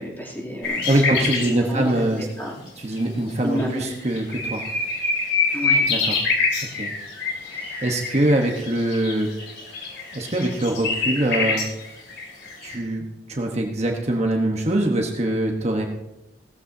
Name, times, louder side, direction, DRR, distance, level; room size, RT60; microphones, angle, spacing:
voice 1, 0.0-2.6 3.4-3.9 5.5-5.9 7.4-7.9, equal, 10° left, -3 dB, 2.9 m, -31 dB
sound 1, 0.6-1.6 3.0-3.1 3.6-3.7 3.9-12.8, left 4 dB, 75° left, 3.3 m, -25 dB
voice 2, 0.9-2.2 2.8-4.6 5.9-6.1 6.7-6.9 7.4-9.3 10.1-11.7 12.6-15.8, right 1 dB, 40° right, 2 dB, 1.2 m, -23 dB
17.5 x 14.5 x 2.8 m, 0.95 s
head